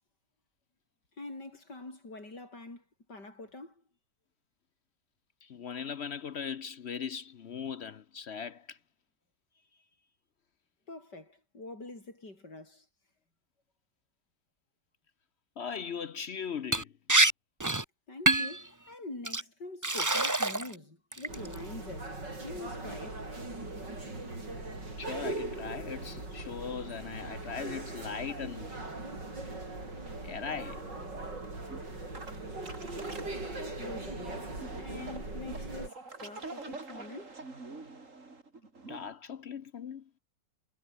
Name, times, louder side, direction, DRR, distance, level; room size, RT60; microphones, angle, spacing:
voice 1, 1.2-2.8 3.1-3.7 10.9-12.8 18.1-22.1 22.4-23.2 33.6-37.4, left 2 dB, 75° left, 7.7 m, -45 dB
voice 2, 5.5-8.8 15.6-16.9 25.0-28.7 30.2-30.8 38.9-40.0, left 7 dB, 55° left, 0.8 m, -39 dB
Liquid, 16.7-16.8 17.1-17.3 17.6-17.8 18.3-18.6 19.2-19.4 19.8-20.7 21.1-21.5, right 2 dB, 15° right, 0.9 m, -26 dB
sound 1, 21.3-35.9, right 2 dB, 85° right, 7.7 m, -40 dB
sound 2, 28.3-39.1, right 3 dB, 45° right, 3.9 m, -47 dB
omnidirectional pair, 1.9 m